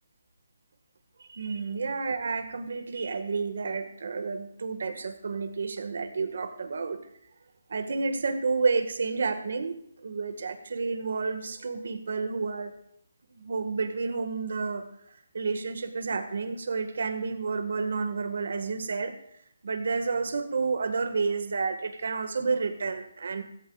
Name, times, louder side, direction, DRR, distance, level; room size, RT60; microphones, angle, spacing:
voice 1, 1.3-7.0 7.7-9.7 10.0-12.7 13.3-14.8 15.3-19.1 19.6-23.4, right 4 dB, 60° right, 8 dB, 1.7 m, -30 dB
16.5 x 15.0 x 2.4 m, 0.72 s
hypercardioid pair, 175°, 0 cm